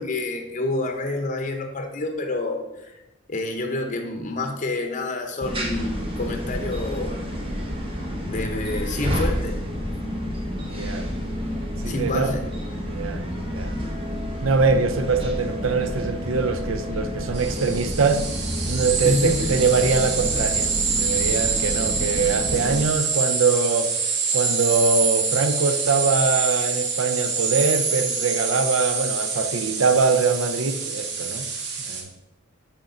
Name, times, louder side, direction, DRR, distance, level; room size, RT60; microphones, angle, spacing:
voice 1, 0.0-2.9 3.3-7.2 8.2-9.6 11.9-12.5 19.0-19.5, left 2 dB, 40° left, 0.7 m, -28 dB
sound 1, 5.4-22.8, equal, 25° right, 1.0 m, -29 dB
voice 2, 10.7-11.1 11.8-12.4 12.9-13.7 14.4-18.2 18.6-20.7 21.0-23.9 24.3-31.5 31.9-32.1, right 4 dB, 80° right, 0.5 m, -23 dB
sound 2, 17.3-32.0, right 5 dB, 60° right, 0.9 m, -26 dB
6.6 x 4.3 x 3.8 m
head